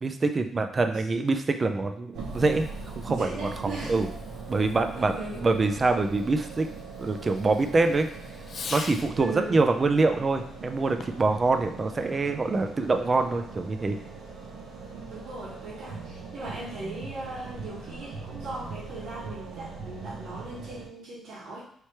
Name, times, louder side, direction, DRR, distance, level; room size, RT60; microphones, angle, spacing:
voice 1, 0.0-2.7 3.0-4.1 4.5-6.7 7.0-8.1 8.7-14.0, right 3 dB, 30° right, 6 dB, 0.5 m, -25 dB
sound 1, 2.1-20.9, right 4 dB, 85° right, 1.0 m, -41 dB
Fireworks, 2.2-9.3 10.9-11.4, left 5 dB, 55° left, 0.4 m, -45 dB
voice 2, 3.1-4.0 4.9-5.5 9.2-9.6 15.1-21.6, right 2 dB, 70° right, -9 dB, 1.4 m, -38 dB
3.3 x 3.2 x 4.3 m, 0.64 s
cardioid pair, 90°, 0 cm